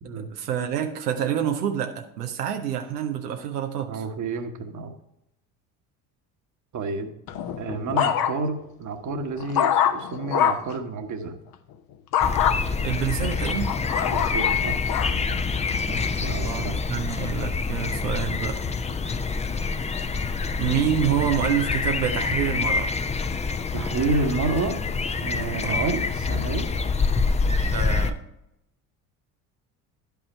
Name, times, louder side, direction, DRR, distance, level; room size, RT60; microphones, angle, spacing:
voice 1, 0.2-4.1 12.8-13.7 16.4-18.6 20.6-22.9 25.6-25.9 27.7-28.2, right 9 dB, 85° right, 5 dB, 0.7 m, -27 dB
voice 2, 3.9-4.9 6.7-7.1 7.6-11.4 14.0-14.8 15.3-15.4 15.9-16.8 23.7-24.8 25.2-26.7, right 3 dB, 40° right, 6 dB, 1.3 m, -29 dB
sound 1, 7.3-8.6 9.1-10.8 12.1-12.6 13.2-15.2 15.8-16.2, left 9 dB, 50° left, 0.8 m, -24 dB
sound 2, 12.2-28.1, left 4 dB, 15° left, 0.5 m, -26 dB
10.5 x 5.7 x 4.3 m, 0.85 s
hypercardioid pair, 65°, 46 cm